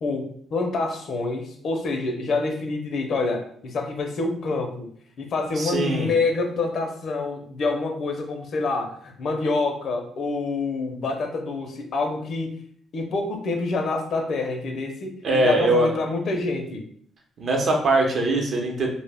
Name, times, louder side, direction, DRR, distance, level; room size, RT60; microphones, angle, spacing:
voice 1, 0.0-4.9 5.2-12.6 12.9-16.9, left 3 dB, 60° left, 4 dB, 0.5 m, -27 dB
voice 2, 5.6-6.1 15.2-15.9 17.4-18.9, right 2 dB, 55° right, 1 dB, 0.6 m, -21 dB
2.1 x 2.0 x 3.3 m, 0.62 s
cardioid pair, 90°, 0 cm